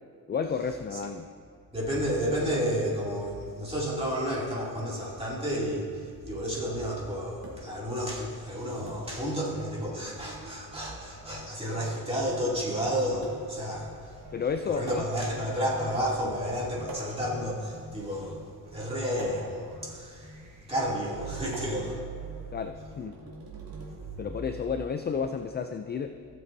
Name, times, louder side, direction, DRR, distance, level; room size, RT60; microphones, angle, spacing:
voice 1, 0.3-1.3 14.3-14.9 22.5-23.2 24.2-26.2, left 6 dB, 25° left, 7 dB, 0.3 m, -31 dB
voice 2, 1.7-14.2 14.7-20.3 20.7-22.0, equal, 15° right, -6 dB, 2.6 m, -31 dB
sound 1, 7.4-7.9 8.9-9.2 10.2-10.5 11.8-12.1 13.2-13.7 14.9-15.5 16.9-17.5 19.2-19.8 21.5-22.1 23.1-23.9, right 1 dB, 65° right, 2.3 m, -44 dB
sound 2, 8.4-24.4, equal, 45° right, 1.4 m, -49 dB
16.5 x 7.5 x 2.7 m, 2.1 s
cardioid pair, 115°, 40 cm